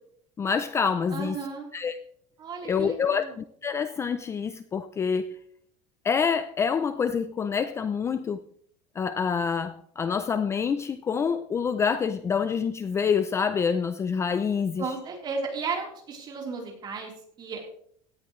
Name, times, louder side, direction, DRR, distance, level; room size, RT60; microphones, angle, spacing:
voice 1, 0.4-1.4 1.7-2.0 2.6-5.3 6.0-8.4 9.0-14.9, left 6 dB, 20° left, 11 dB, 0.5 m, -27 dB
voice 2, 1.1-1.7 2.4-3.3 14.8-17.1 17.4-17.8, right 4 dB, 30° right, 0 dB, 3.8 m, -34 dB
17.5 x 13.5 x 3.2 m, 0.64 s
cardioid pair, 160°, 15 cm